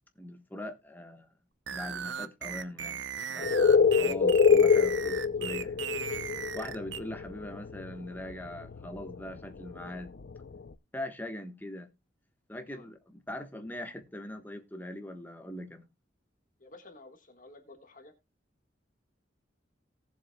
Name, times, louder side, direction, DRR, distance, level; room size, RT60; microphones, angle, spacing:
voice 1, 0.2-1.3 1.7-3.0 3.3-5.8 6.5-10.1 10.9-11.9 12.5-15.9, left 1 dB, 10° left, 1.2 m, -41 dB
sound 1, 1.7-7.0, right 8 dB, 65° right, 0.7 m, -37 dB
sound 2, 3.4-8.0 8.3-9.2 9.4-10.5, left 5 dB, 60° left, 0.6 m, -25 dB
voice 2, 16.6-18.1, left 2 dB, 45° left, 1.6 m, -52 dB
18.5 x 7.2 x 2.3 m
head